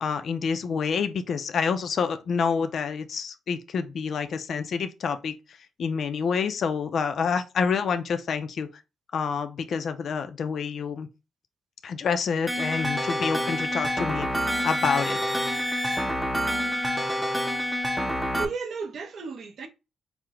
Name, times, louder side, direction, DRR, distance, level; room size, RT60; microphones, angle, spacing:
voice 1, 0.0-8.7 9.1-11.1 11.8-15.2, left 6 dB, 55° left, 0.3 m, -28 dB
sound 1, 12.5-18.5, equal, 5° right, 0.5 m, -27 dB
voice 2, 18.3-19.7, right 5 dB, 55° right, 0.7 m, -33 dB
4.4 x 2.0 x 3.6 m
cardioid pair, 130°, 0 cm